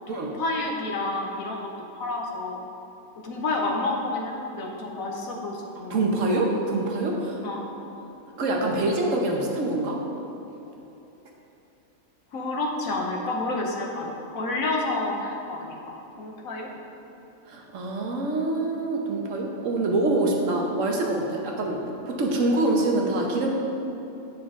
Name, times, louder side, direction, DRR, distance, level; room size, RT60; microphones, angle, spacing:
voice 1, 0.1-2.6 3.2-6.1 7.4-7.6 12.3-16.7, left 2 dB, 75° left, 0 dB, 1.4 m, -30 dB
voice 2, 5.9-7.4 8.0-8.1 8.4-10.0 17.5-23.5, right 2 dB, 65° right, 0 dB, 1.3 m, -25 dB
9.4 x 6.1 x 3.7 m, 3.0 s
omnidirectional pair, 1.5 m